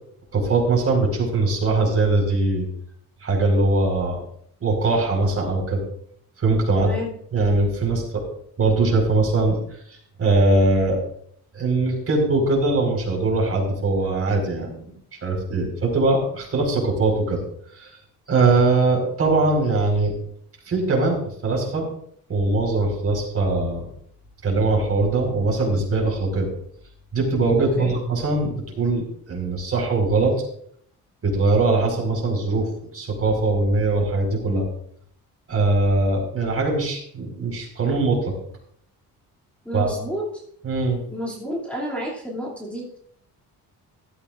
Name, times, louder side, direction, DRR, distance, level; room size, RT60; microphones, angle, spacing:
voice 1, 0.3-2.7 3.2-4.2 4.6-5.8 6.4-6.9 7.3-8.2 8.6-11.0 11.5-14.8 15.2-17.4 17.7-17.9 18.3-20.1 20.6-21.9 22.3-23.9 24.4-26.5 27.1-30.3 31.2-32.7 32.9-34.6 35.5-38.3 39.7-39.9 40.6-41.0, right 3 dB, 40° right, 1 dB, 4.9 m, -21 dB
voice 2, 6.7-7.1 27.6-28.0 39.6-40.3 41.1-43.0, equal, 5° left, -6 dB, 2.8 m, -30 dB
15.0 x 13.5 x 2.6 m, 0.65 s
cardioid pair, 140°, 37 cm